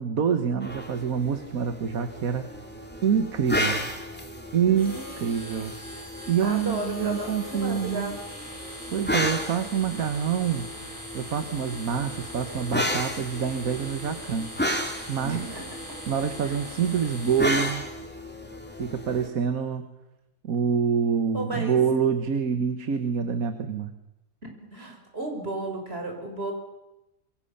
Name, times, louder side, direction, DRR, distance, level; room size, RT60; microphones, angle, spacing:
voice 1, 0.0-2.5 3.0-3.9 4.5-5.7 6.3-8.1 8.9-10.7 11.1-14.5 15.1-15.5 16.1-17.9 18.8-19.9 20.4-23.9, right 7 dB, 80° right, 9 dB, 1.8 m, -26 dB
sound 1, 0.6-19.3, equal, 5° left, 2.7 m, -34 dB
voice 2, 4.7-5.4 6.4-8.2 15.2-15.6 16.4-16.6 21.3-21.8 24.4-26.5, right 1 dB, 45° right, 3 dB, 5.7 m, -34 dB
sound 2, 4.8-17.7, equal, 20° left, 5.2 m, -42 dB
27.0 x 22.5 x 7.0 m, 0.95 s
omnidirectional pair, 1.5 m